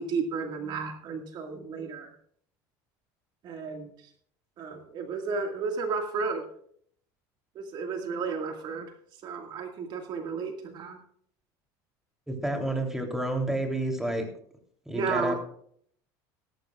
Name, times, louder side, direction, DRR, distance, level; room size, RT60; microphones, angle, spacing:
voice 1, 0.0-2.1 3.4-3.9 4.6-6.4 7.6-8.9 9.2-11.0 14.9-15.3, right 5 dB, 50° right, 4 dB, 2.0 m, -33 dB
voice 2, 12.3-14.2 14.9-15.4, right 1 dB, 5° right, 3 dB, 3.2 m, -29 dB
17.5 x 14.0 x 2.4 m, 0.63 s
supercardioid pair, 115°, 10 cm